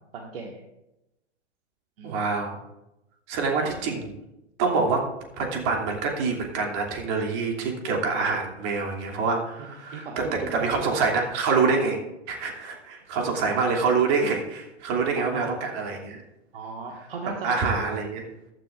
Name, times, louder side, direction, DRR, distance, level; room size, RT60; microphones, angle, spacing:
voice 1, 0.1-0.6 2.0-2.2 3.6-3.7 9.6-11.1 15.2-15.6 16.5-17.5, right 4 dB, 50° right, 1 dB, 1.8 m, -37 dB
voice 2, 2.0-2.6 3.3-4.1 4.6-5.0 5.4-12.0 12.3-16.2 17.4-18.3, right 4 dB, 35° right, 1 dB, 2.8 m, -26 dB
14.5 x 13.5 x 2.5 m, 0.91 s
figure-of-eight pair, 105°, 35 cm